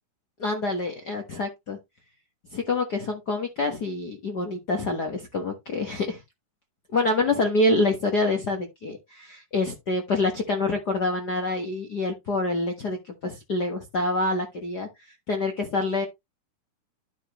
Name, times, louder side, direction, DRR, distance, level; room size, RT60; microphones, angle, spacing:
voice 1, 0.4-1.8 2.5-6.2 6.9-14.9 15.3-16.1, left 2 dB, 55° left, 1.1 m, -26 dB
11.5 x 5.0 x 3.0 m
omnidirectional pair, 3.8 m